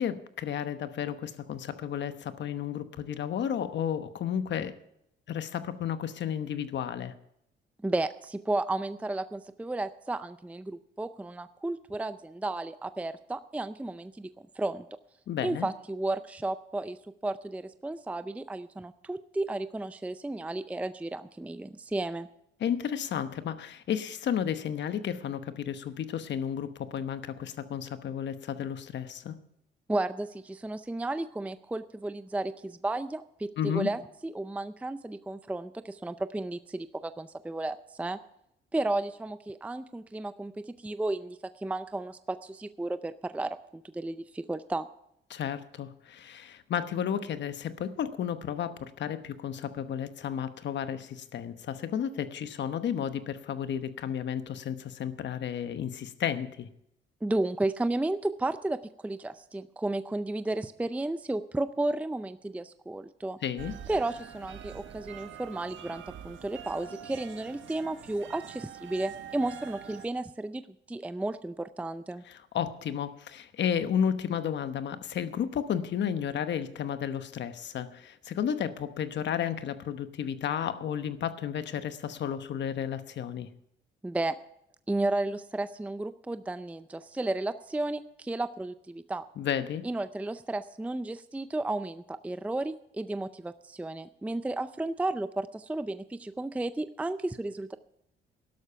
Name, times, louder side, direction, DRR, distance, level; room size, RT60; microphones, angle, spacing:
voice 1, 0.0-4.7 5.3-7.1 15.3-15.7 22.6-29.3 33.6-33.9 45.3-56.7 63.4-63.7 72.3-83.5 89.4-89.8, left 8 dB, 65° left, 11 dB, 1.1 m, -32 dB
voice 2, 7.8-14.9 15.4-22.3 29.9-38.2 38.7-44.9 57.2-63.4 63.9-70.6 70.9-72.2 84.0-84.4 84.9-89.3 89.8-97.8, right 2 dB, 5° right, 12 dB, 0.5 m, -33 dB
sound 1, 63.6-70.1, right 8 dB, 70° right, 1.4 m, -45 dB
12.0 x 12.0 x 5.7 m, 0.76 s
cardioid pair, 90°, 20 cm